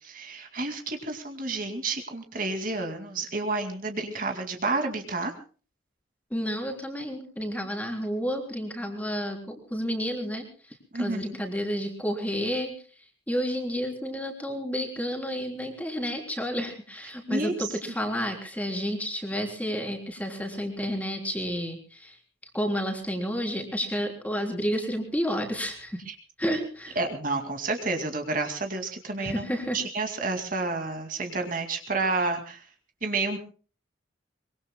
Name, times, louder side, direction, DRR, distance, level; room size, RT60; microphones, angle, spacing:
voice 1, 0.0-5.3 10.9-11.2 17.3-17.7 26.1-26.2 26.5-26.6 27.0-29.5 29.7-32.6 33.0-33.4, right 3 dB, 45° right, 5 dB, 2.3 m, -30 dB
voice 2, 6.3-12.7 13.3-22.2 22.5-26.0 26.4-27.0 29.2-29.8, equal, 10° left, 3 dB, 3.6 m, -31 dB
24.5 x 23.5 x 2.2 m, 0.38 s
head